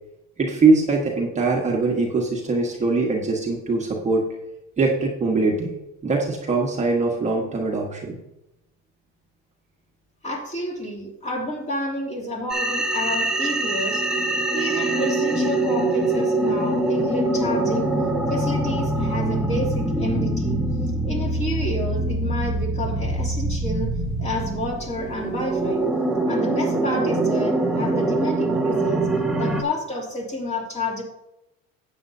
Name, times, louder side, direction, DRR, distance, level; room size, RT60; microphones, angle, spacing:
voice 1, 0.4-4.2 4.8-5.8 6.0-8.2, right 3 dB, 20° right, -1 dB, 1.4 m, -22 dB
voice 2, 10.2-14.0 14.5-17.9 18.3-20.6 21.0-23.9 24.2-25.8 26.2-29.1 29.4-31.0, left 1 dB, 20° left, -2 dB, 2.9 m, -30 dB
sound 1, 12.5-29.6, right 2 dB, ahead, 1.0 m, -24 dB
13.0 x 8.9 x 2.8 m, 0.89 s
cardioid pair, 130°, 31 cm